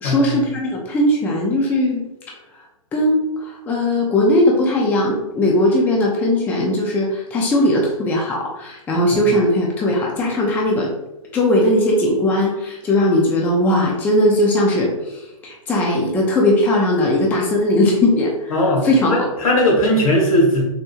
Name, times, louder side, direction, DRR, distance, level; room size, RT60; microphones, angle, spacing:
voice 1, 0.0-2.0 2.9-10.9 11.3-19.3, left 1 dB, 10° left, -1 dB, 0.4 m, -18 dB
voice 2, 18.5-20.6, left 1 dB, 70° left, -2 dB, 1.4 m, -18 dB
3.5 x 2.6 x 2.8 m, 0.95 s
figure-of-eight pair, 120°, 18 cm